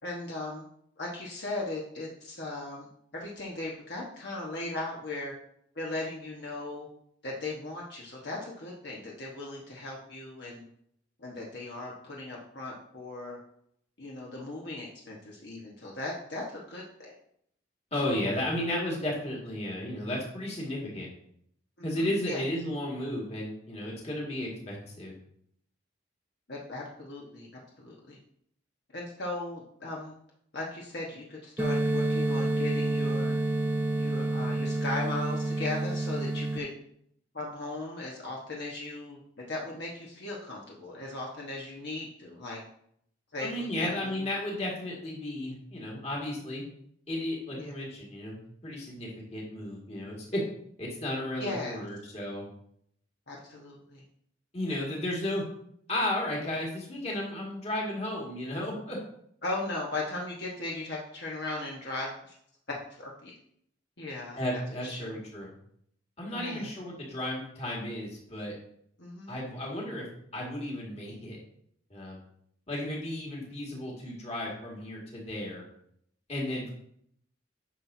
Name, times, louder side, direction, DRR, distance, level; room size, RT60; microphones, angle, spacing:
voice 1, 0.0-0.6 1.0-2.9 3.1-5.3 5.7-6.9 7.2-10.6 11.2-13.4 14.0-17.1 18.2-18.4 21.9-22.4 26.5-28.2 28.9-30.1 30.5-33.4 34.0-36.7 37.3-42.6 43.3-44.1 47.5-47.7 51.4-51.8 53.3-54.0 59.4-62.3 62.7-63.3 64.0-64.4 64.8-65.2 66.3-66.7 69.0-69.4, left 2 dB, 60° left, -3 dB, 1.3 m, -37 dB
voice 2, 17.9-21.1 21.8-25.1 43.4-46.6 47.1-50.4 50.8-52.4 54.5-55.4 55.9-59.0 64.4-65.5 66.2-68.5 69.3-70.0 70.3-71.4 71.9-72.2 72.7-75.6 76.3-76.7, left 1 dB, 35° left, -3 dB, 2.1 m, -34 dB
sound 1, 31.6-36.6, right 2 dB, 10° right, 0.7 m, -28 dB
9.8 x 6.0 x 2.8 m, 0.68 s
head